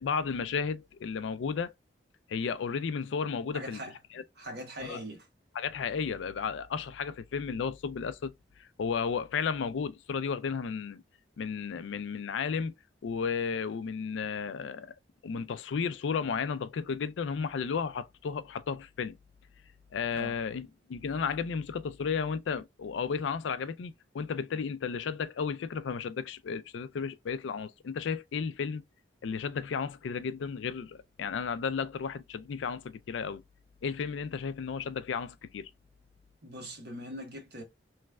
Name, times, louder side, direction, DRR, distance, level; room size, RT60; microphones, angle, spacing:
voice 1, 0.0-1.7 2.3-3.8 4.1-4.2 4.8-5.0 5.6-8.3 8.6-11.0 11.4-12.7 13.0-14.9 15.2-19.2 19.9-28.8 29.2-33.4 33.8-35.7, left 6 dB, 80° left, 0.4 m, -33 dB
voice 2, 3.5-4.0 4.4-5.3 20.1-20.4 36.4-37.6, equal, 60° right, 1.2 m, -41 dB
3.1 x 2.3 x 3.2 m
head